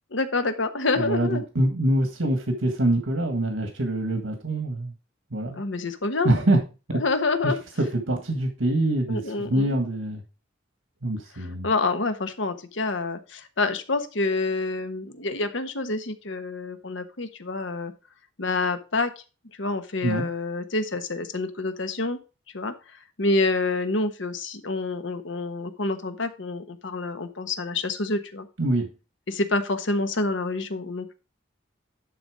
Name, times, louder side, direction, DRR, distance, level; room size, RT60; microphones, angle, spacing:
voice 1, 0.1-1.4 5.6-6.3 6.9-7.6 9.1-9.7 11.6-17.9 18.4-19.1 19.6-22.2 22.5-22.7 23.2-28.5 29.3-31.1, left 3 dB, 70° left, 9 dB, 1.1 m, -27 dB
voice 2, 1.0-4.9 5.3-5.6 6.2-6.6 6.9-7.0 7.4-7.5 7.8-10.2 11.0-11.7 20.0-20.2 28.6-28.9, right 1 dB, 80° right, 5 dB, 1.6 m, -24 dB
11.0 x 4.1 x 4.9 m, 0.31 s
head